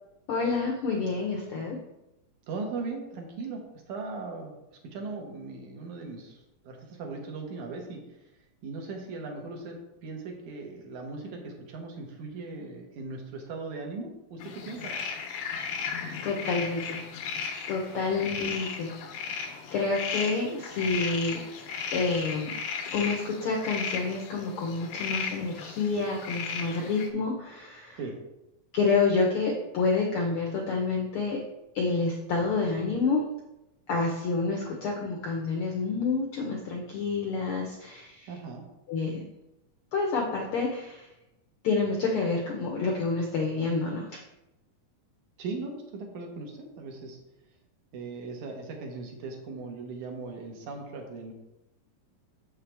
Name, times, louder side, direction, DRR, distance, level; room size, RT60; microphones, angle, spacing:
voice 1, 0.3-1.8 15.6-15.8 16.2-17.0 17.7-22.5 22.9-28.0 28.7-31.4 31.7-33.2 33.9-38.3 38.9-39.2 39.9-41.1 41.6-44.2, left 4 dB, 75° left, 0 dB, 1.3 m, -28 dB
voice 2, 2.5-4.6 4.9-8.0 8.6-14.9 18.1-18.3 28.0-28.1 38.3-38.6 45.4-47.2 47.9-51.3, right 3 dB, 75° right, 1 dB, 2.6 m, -38 dB
sound 1, 14.4-27.1, left 6 dB, 90° left, 2.5 m, -36 dB
7.5 x 6.5 x 3.4 m, 0.93 s
omnidirectional pair, 3.5 m